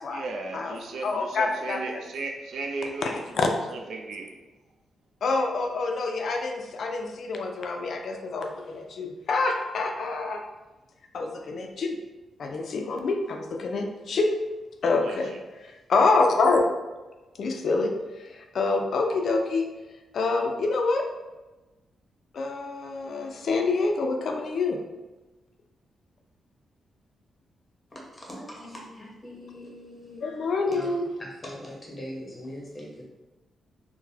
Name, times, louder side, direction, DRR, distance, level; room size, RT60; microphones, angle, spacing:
voice 1, 0.1-3.3 3.7-4.3 15.0-15.4, right 3 dB, 75° right, 2 dB, 0.4 m, -35 dB
voice 2, 1.0-2.0 3.0-3.5 5.2-10.4 11.1-12.0 12.4-14.4 14.8-15.3 15.6-16.7 17.4-19.7 20.1-21.0 22.3-24.8 30.2-31.0, left 3 dB, 60° left, 3 dB, 0.3 m, -26 dB
voice 3, 27.9-30.2 30.7-33.0, left 1 dB, 20° left, -3 dB, 0.9 m, -41 dB
3.8 x 2.1 x 2.8 m, 1.1 s
wide cardioid pair, 135°, 0 cm